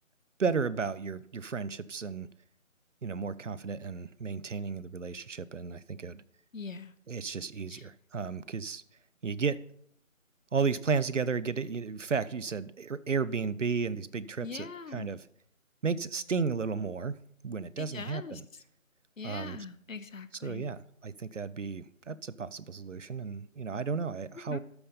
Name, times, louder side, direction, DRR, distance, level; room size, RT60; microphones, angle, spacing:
voice 1, 0.4-2.3 3.0-6.2 7.1-8.8 9.2-9.6 10.5-15.3 15.8-17.2 17.4-18.4 19.2-19.7 20.4-24.6, right 5 dB, 65° right, 17 dB, 0.7 m, -33 dB
voice 2, 6.5-6.9 7.7-7.8 14.4-15.1 17.8-18.4 19.2-20.7 24.5-24.6, left 4 dB, 70° left, 13 dB, 0.9 m, -42 dB
13.0 x 5.2 x 5.6 m, 0.68 s
figure-of-eight pair, 160°, 40 cm